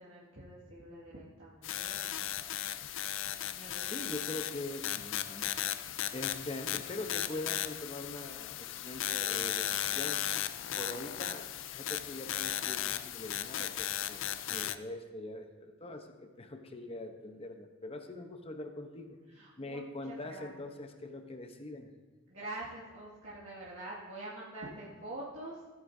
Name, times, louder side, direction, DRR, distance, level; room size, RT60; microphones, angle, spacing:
voice 1, 0.0-2.1 3.5-3.9 19.3-20.5 22.3-25.8, right 2 dB, 75° right, -9 dB, 2.2 m, -45 dB
sound 1, 1.6-14.8, left 11 dB, 65° left, 0.4 m, -36 dB
voice 2, 3.8-5.5 5.8-19.2 19.6-21.9, left 2 dB, 30° left, 5 dB, 0.9 m, -43 dB
15.5 x 9.7 x 2.7 m, 1.3 s
head